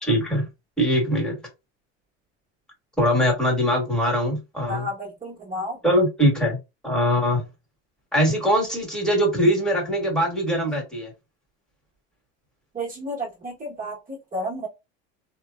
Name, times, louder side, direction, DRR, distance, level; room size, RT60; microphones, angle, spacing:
voice 1, 0.0-0.4 0.8-1.4 3.0-4.9 5.8-6.6 6.8-7.4 8.1-11.1, equal, ahead, 1.4 m, -22 dB
voice 2, 4.7-5.8 12.7-14.7, equal, 25° right, 1.2 m, -32 dB
3.0 x 2.2 x 2.3 m
supercardioid pair, 115°, 34 cm